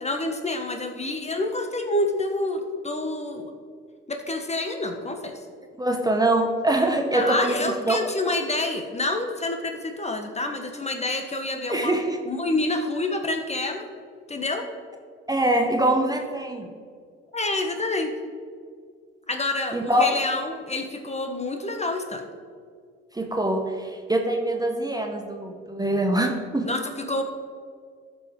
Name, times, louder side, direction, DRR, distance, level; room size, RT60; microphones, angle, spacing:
voice 1, 0.0-3.5 4.1-5.3 7.1-12.0 12.2-13.9 14.3-14.7 17.3-18.1 19.3-22.2 26.6-27.2, left 2 dB, 20° left, 5 dB, 1.2 m, -28 dB
voice 2, 5.8-8.0 11.7-12.2 15.3-16.7 19.7-20.2 23.1-26.7, right 1 dB, 10° right, 3 dB, 1.0 m, -24 dB
14.0 x 5.3 x 3.7 m, 2.1 s
hypercardioid pair, 55°, 31 cm